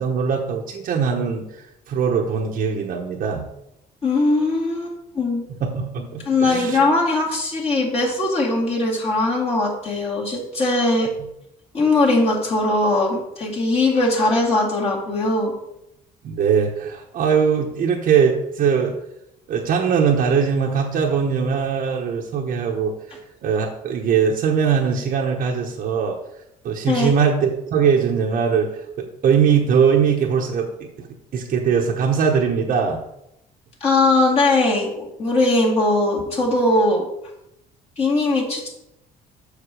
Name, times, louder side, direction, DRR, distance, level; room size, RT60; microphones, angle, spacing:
voice 1, 0.0-3.4 5.6-6.8 16.2-19.0 19.5-26.2 26.6-28.7 29.0-31.1 31.3-33.0, right 6 dB, 55° right, 0 dB, 1.0 m, -21 dB
voice 2, 4.0-5.4 6.3-11.1 11.7-15.5 26.9-27.1 33.8-37.1 38.0-38.7, left 2 dB, 35° left, -4 dB, 2.2 m, -20 dB
6.7 x 5.0 x 4.8 m, 0.82 s
cardioid pair, 110°, 17 cm